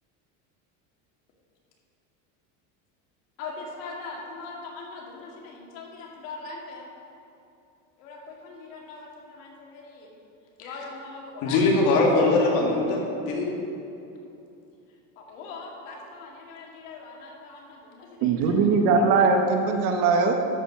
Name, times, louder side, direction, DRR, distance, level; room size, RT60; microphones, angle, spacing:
voice 1, 3.4-6.9 8.0-10.2 10.6-11.6 15.2-18.7, left 3 dB, 85° left, -1 dB, 2.3 m, -41 dB
voice 2, 11.4-13.5, left 2 dB, 65° left, -1 dB, 2.4 m, -21 dB
voice 3, 18.2-20.3, right 4 dB, 60° right, 4 dB, 1.2 m, -20 dB
12.5 x 5.2 x 5.7 m, 2.7 s
cardioid pair, 145°, 38 cm